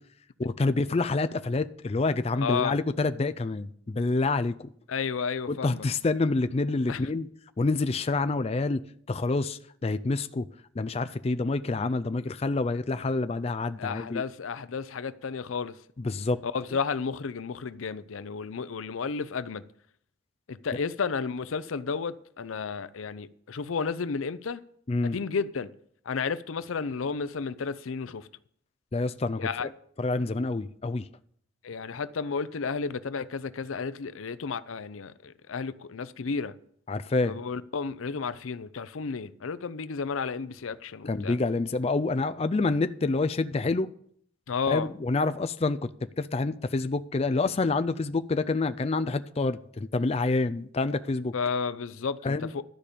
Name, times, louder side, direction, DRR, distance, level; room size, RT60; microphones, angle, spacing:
voice 1, 0.4-4.7 5.5-7.3 7.6-10.5 10.8-14.2 16.0-16.4 24.9-25.2 28.9-29.5 30.0-31.1 36.9-37.3 41.0-43.9 44.7-51.3 52.2-52.5, left 3 dB, 30° left, 0.4 m, -27 dB
voice 2, 2.4-2.7 4.9-5.9 6.9-7.0 13.8-15.8 16.4-19.6 20.5-24.6 25.0-25.7 26.1-28.3 29.4-29.7 31.6-36.5 37.2-41.4 44.5-44.9 51.3-52.6, left 5 dB, 90° left, 0.6 m, -32 dB
12.5 x 5.1 x 8.4 m
head